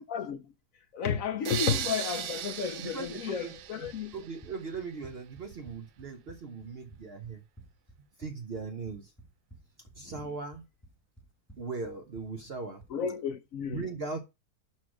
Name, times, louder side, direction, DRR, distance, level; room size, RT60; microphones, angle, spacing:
voice 1, 0.1-0.5 0.9-4.1 12.9-13.8, left 7 dB, 65° left, 0.9 m, -32 dB
sound 1, 1.4-4.5, right 11 dB, 80° right, 1.3 m, -37 dB
voice 2, 2.8-7.4 8.2-9.1 9.9-10.6 11.5-12.8 13.7-14.2, right 4 dB, 50° right, 0.7 m, -39 dB
Run, 3.6-13.0, right 2 dB, 10° left, 1.1 m, -55 dB
6.0 x 4.4 x 6.0 m
omnidirectional pair, 1.8 m